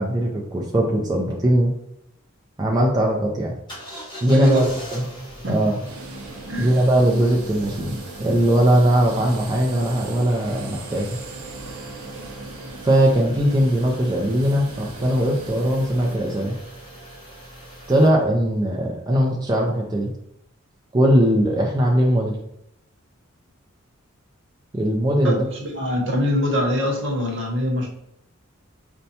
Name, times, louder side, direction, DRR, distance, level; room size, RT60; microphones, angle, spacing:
voice 1, 0.0-1.7 2.6-3.5 4.2-5.0 5.5-5.8 6.6-11.2 12.8-16.5 17.9-20.1 20.9-22.3 24.7-25.5, right 1 dB, 20° right, -2 dB, 0.4 m, -20 dB
sound 1, 3.7-18.1, right 1 dB, 20° left, 1.2 m, -40 dB
voice 2, 4.3-4.7 5.4-5.6 6.5-6.7 25.2-27.9, equal, 60° right, 0 dB, 0.9 m, -23 dB
sound 2, 5.9-16.2, right 3 dB, 85° right, 0.5 m, -39 dB
5.3 x 2.2 x 2.7 m, 0.78 s
head